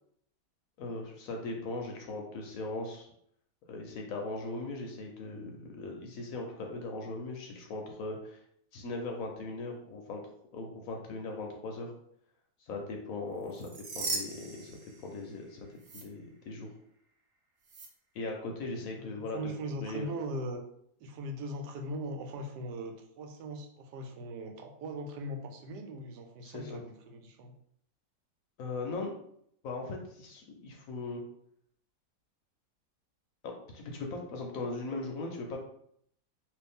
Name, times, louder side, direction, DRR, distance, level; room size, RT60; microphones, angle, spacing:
voice 1, 0.8-3.1 3.7-8.4 8.7-10.2 10.5-11.9 12.6-15.7 15.9-16.7 18.1-19.5 19.8-20.1 26.4-26.8 28.6-29.1 29.6-31.2 33.4-35.6, left 2 dB, 65° left, 1 dB, 0.9 m, -39 dB
sound 1, 13.4-15.4 15.8-16.0 17.7-17.9, right 3 dB, 60° right, 0.7 m, -38 dB
voice 2, 19.0-20.6 21.0-27.5, right 1 dB, 85° right, 4 dB, 1.2 m, -40 dB
3.1 x 2.6 x 3.5 m, 0.70 s
omnidirectional pair, 1.7 m